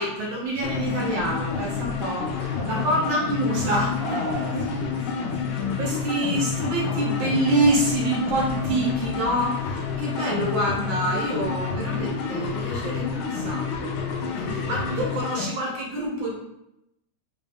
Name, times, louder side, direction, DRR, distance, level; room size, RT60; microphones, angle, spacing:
voice 1, 0.0-2.4 2.6-4.0 4.5-4.7 5.8-14.4 14.7-16.4, right 1 dB, 75° right, -3 dB, 1.9 m, -26 dB
sound 1, 0.6-15.5, left 6 dB, 90° left, 1.4 m, -29 dB
voice 2, 2.4-3.0 4.0-6.2 14.2-15.1, right 1 dB, 35° left, -8 dB, 1.4 m, -36 dB
sound 2, 6.8-7.4, left 4 dB, 60° left, 2.0 m, -41 dB
4.2 x 2.4 x 3.4 m, 0.83 s
omnidirectional pair, 2.2 m